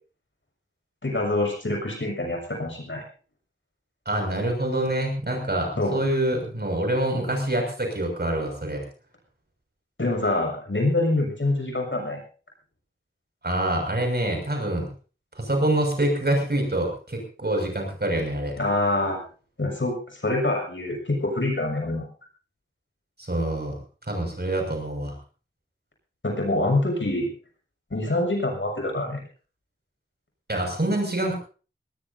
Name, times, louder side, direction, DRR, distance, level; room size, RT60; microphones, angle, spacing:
voice 1, 1.0-3.0 5.8-6.0 10.0-12.2 18.6-19.2 19.6-22.1 26.2-27.3 27.9-29.2, left 2 dB, 70° left, 2 dB, 6.9 m, -25 dB
voice 2, 4.0-8.8 13.4-14.9 15.3-18.5 23.2-23.8 24.1-25.1 30.5-31.3, right 1 dB, 55° right, 2 dB, 6.5 m, -26 dB
20.0 x 19.5 x 2.8 m, 0.37 s
wide cardioid pair, 55°, 20 cm